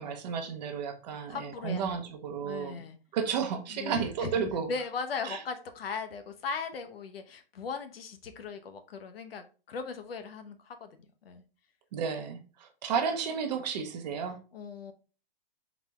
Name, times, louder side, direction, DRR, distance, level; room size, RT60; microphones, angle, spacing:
voice 1, 0.0-2.8 3.1-4.7 5.2-5.4 11.9-14.4, right 6 dB, 45° right, 0.8 m, -32 dB
voice 2, 1.3-2.1 2.4-3.0 3.7-4.4 4.7-11.4 14.5-14.9, left 5 dB, 70° left, 0.8 m, -38 dB
4.0 x 3.4 x 2.9 m
hypercardioid pair, 140°, 30 cm